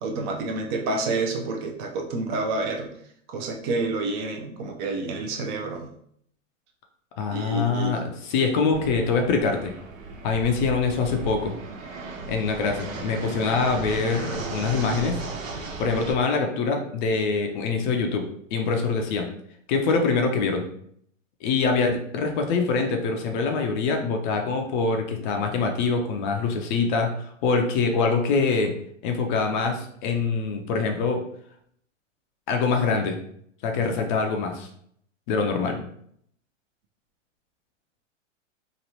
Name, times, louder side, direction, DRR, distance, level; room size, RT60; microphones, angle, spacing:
voice 1, 0.0-2.9 3.3-5.9 7.3-8.0, right 3 dB, 40° right, 3 dB, 0.6 m, -29 dB
voice 2, 7.2-9.7 10.2-11.6 12.3-15.2 15.8-19.3 19.7-20.7 21.4-28.7 29.0-31.2 32.5-33.2 33.6-34.7 35.3-35.8, left 4 dB, 40° left, 3 dB, 0.5 m, -24 dB
Fixed-wing aircraft airplane, 8.7-16.1, right 3 dB, 90° right, 0.7 m, -35 dB
3.0 x 2.3 x 2.9 m, 0.68 s
hypercardioid pair, 115°, 39 cm